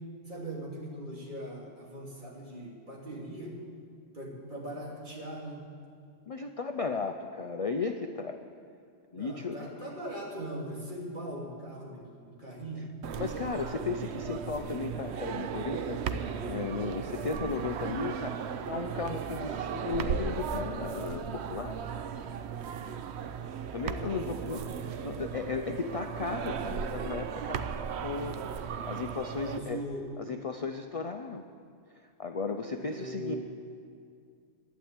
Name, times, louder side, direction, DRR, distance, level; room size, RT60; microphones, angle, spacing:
voice 1, 0.3-3.5 4.1-5.6 9.1-12.9 24.0-24.9 29.3-30.1 32.8-33.4, right 1 dB, 45° right, -4 dB, 3.1 m, -40 dB
voice 2, 6.3-8.4 9.1-9.7 13.2-21.8 23.7-24.7 25.0-27.7 28.0-29.8 30.2-31.4 32.2-33.4, left 4 dB, 40° left, 5 dB, 0.5 m, -35 dB
sound 1, 13.0-29.6, right 7 dB, 75° right, 0.9 m, -36 dB
11.5 x 9.7 x 8.8 m, 2.3 s
omnidirectional pair, 1.1 m